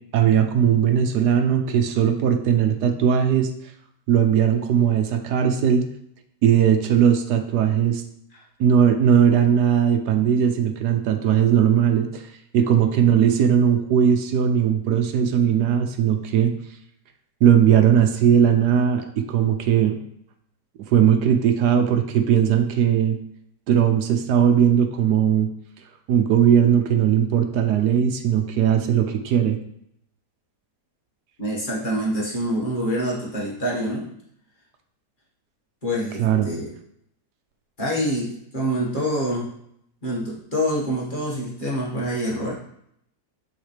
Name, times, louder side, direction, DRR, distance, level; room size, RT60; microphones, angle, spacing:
voice 1, 0.1-3.5 4.1-5.9 6.4-8.0 8.6-12.2 12.5-16.5 17.4-20.0 20.9-23.2 23.7-25.5 26.1-29.6 36.2-36.5, right 8 dB, 75° right, 5 dB, 1.2 m, -19 dB
voice 2, 31.4-34.1 35.8-36.6 37.8-39.5 40.0-42.5, equal, 30° left, -6 dB, 1.8 m, -26 dB
9.5 x 4.0 x 3.3 m, 0.73 s
omnidirectional pair, 1.8 m